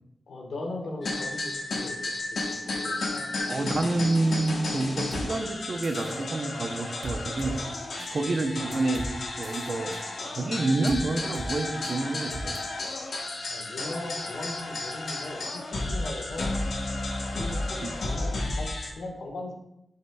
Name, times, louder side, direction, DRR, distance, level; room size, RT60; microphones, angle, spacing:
voice 1, 0.3-2.0 2.3-3.2 8.1-8.3 13.4-16.5 17.2-19.5, left 2 dB, 85° left, 1 dB, 1.5 m, -38 dB
sound 1, 1.0-18.9, left 2 dB, 60° left, 1.1 m, -33 dB
voice 2, 3.5-7.6 7.9-9.1 9.4-12.6 17.8-17.9, right 2 dB, 40° right, 5 dB, 0.7 m, -28 dB
sound 2, 5.1-5.2 5.8-6.2 7.0-7.5 8.0-8.1 8.7-9.1 9.4-10.0 10.9-11.0 11.3-11.5 11.8-12.0 12.3-12.6, right 2 dB, 85° right, 1.1 m, -37 dB
11.0 x 5.6 x 2.3 m, 0.85 s
wide cardioid pair, 165°, 0 cm